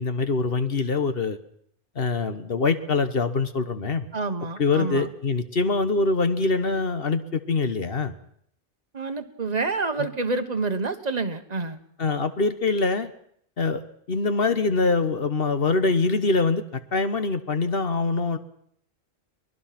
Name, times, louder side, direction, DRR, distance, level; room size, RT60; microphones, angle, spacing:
voice 1, 0.0-1.4 1.9-4.1 4.6-8.1 10.0-10.1 12.0-13.1 13.6-13.8 14.1-18.4, left 3 dB, 60° left, 10 dB, 1.4 m, -24 dB
voice 2, 4.1-5.1 8.9-11.8, right 3 dB, 40° right, 8 dB, 1.5 m, -28 dB
23.5 x 20.5 x 6.0 m, 0.67 s
omnidirectional pair, 1.1 m